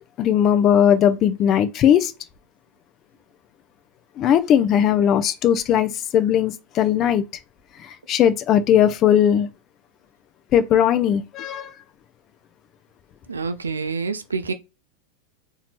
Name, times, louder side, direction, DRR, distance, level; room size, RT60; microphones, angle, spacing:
voice 1, 0.2-2.1 4.2-7.2 8.1-9.5 10.5-11.7, left 9 dB, 35° left, 0.7 m, -18 dB
voice 2, 13.3-14.5, right 4 dB, 75° right, 0.6 m, -27 dB
4.3 x 2.9 x 4.1 m
figure-of-eight pair, 90°, 0 cm